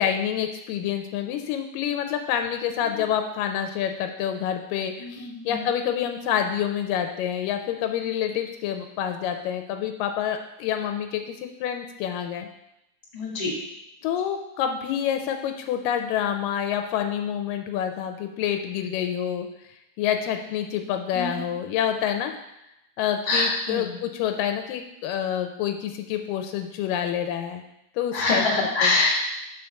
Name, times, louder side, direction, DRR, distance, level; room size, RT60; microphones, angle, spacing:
voice 1, 0.0-12.5 14.0-19.5 20.0-22.3 23.0-27.6 28.0-28.9, left 9 dB, 85° left, 6 dB, 2.2 m, -27 dB
voice 2, 5.0-5.7 13.1-13.5 21.1-21.5 23.3-24.0 28.1-29.2, left 2 dB, 20° left, -4 dB, 1.7 m, -25 dB
5.8 x 4.7 x 6.5 m, 0.85 s
omnidirectional pair, 3.9 m